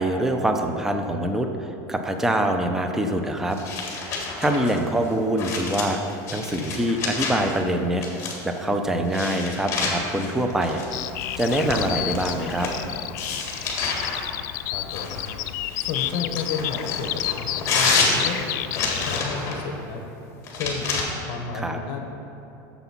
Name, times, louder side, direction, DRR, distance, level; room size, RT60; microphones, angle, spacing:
voice 1, 0.0-3.6 4.4-6.0 6.3-10.8 11.4-12.7 21.5-21.8, right 1 dB, 5° right, 5 dB, 0.4 m, -24 dB
sound 1, 3.5-7.6 8.0-8.6 9.1-12.8 13.2-14.2 14.9-19.6 20.4-21.0, left 4 dB, 30° left, 1.7 m, -29 dB
Bird vocalization bird call bird song, 10.9-19.2, left 15 dB, 85° left, 0.4 m, -31 dB
voice 2, 14.7-15.2 15.8-18.4 18.7-20.0 20.6-20.9 21.3-22.0, left 5 dB, 50° left, 3 dB, 0.9 m, -32 dB
7.7 x 7.1 x 5.8 m, 3.0 s
supercardioid pair, 165°, 10 cm